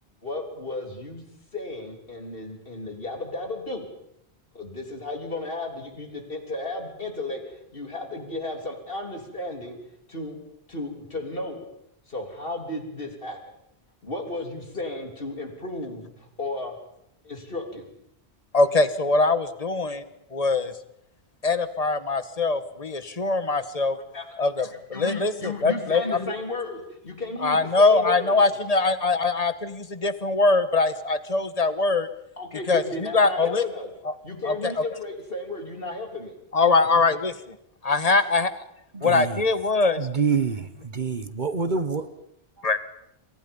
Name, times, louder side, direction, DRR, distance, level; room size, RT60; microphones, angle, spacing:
voice 1, 0.2-1.2 1.5-3.9 4.5-9.8 10.1-10.4 10.7-11.6 12.1-13.4 14.0-16.7 17.2-17.9 23.9-24.3 24.9-28.4 32.4-33.9 34.2-36.4 36.8-37.0, left 2 dB, 60° left, 5 dB, 3.7 m, -34 dB
voice 2, 18.5-20.0 20.3-20.7 21.4-24.0 24.4-26.3 27.4-32.1 32.7-32.8 33.1-33.6 34.4-34.7 36.5-37.5 37.8-38.5 39.0-40.0 42.6-42.8, left 3 dB, 35° left, 13 dB, 1.4 m, -22 dB
voice 3, 38.9-39.4 40.0-42.0, right 5 dB, 45° right, 12 dB, 1.2 m, -26 dB
28.5 x 23.5 x 5.4 m, 0.76 s
omnidirectional pair, 1.1 m